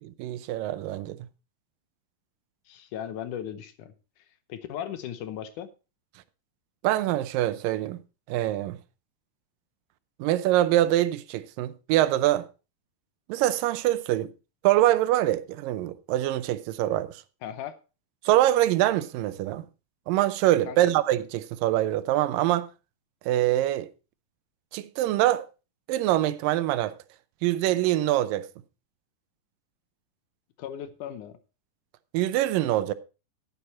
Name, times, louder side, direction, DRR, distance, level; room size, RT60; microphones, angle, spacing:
voice 1, 0.0-1.2 6.8-8.0 8.3-8.8 10.2-12.5 13.3-14.3 14.6-17.2 18.2-19.6 20.1-22.7 23.3-23.9 24.7-25.5 25.9-26.9 27.4-28.5 32.1-32.9, right 14 dB, 85° right, 2.4 m, -24 dB
voice 2, 2.7-3.9 4.5-5.7 17.4-17.8 20.7-20.9 30.6-31.4, left 10 dB, 75° left, 2.2 m, -37 dB
10.5 x 9.6 x 4.2 m
omnidirectional pair, 3.9 m